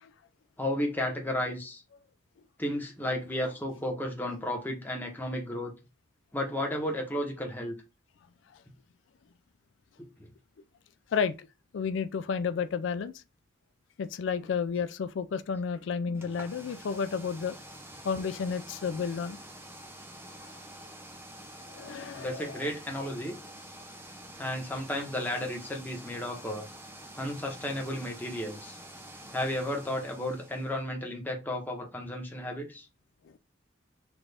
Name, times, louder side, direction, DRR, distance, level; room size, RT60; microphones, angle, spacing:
voice 1, 0.6-1.8 2.6-5.7 6.3-7.7 22.2-23.4 24.4-26.7 27.1-28.8 29.3-32.9, left 1 dB, 10° left, 1.0 m, -33 dB
voice 2, 11.7-13.2 14.0-17.6 18.0-19.4 20.5-20.6 21.7-22.6, left 6 dB, 70° left, 0.3 m, -31 dB
sound 1, 16.1-30.8, right 1 dB, 10° right, 0.5 m, -47 dB
6.0 x 2.5 x 3.4 m
head